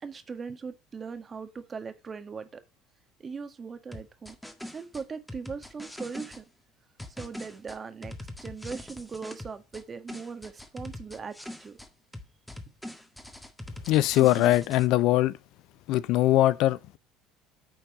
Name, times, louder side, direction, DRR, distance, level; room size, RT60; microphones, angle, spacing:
voice 1, 0.0-2.6 3.2-4.4 4.7-6.5 7.1-8.1 8.4-11.3 11.6-11.8, right 5 dB, 30° right, 1.6 m, -39 dB
sound 1, 3.9-6.4 7.0-9.8 10.1-11.9 12.1-14.9, left 1 dB, 5° left, 1.6 m, -42 dB
voice 2, 13.9-15.3 15.9-17.0, left 15 dB, 65° left, 0.5 m, -22 dB
9.0 x 4.6 x 5.0 m
hypercardioid pair, 80°, 0 cm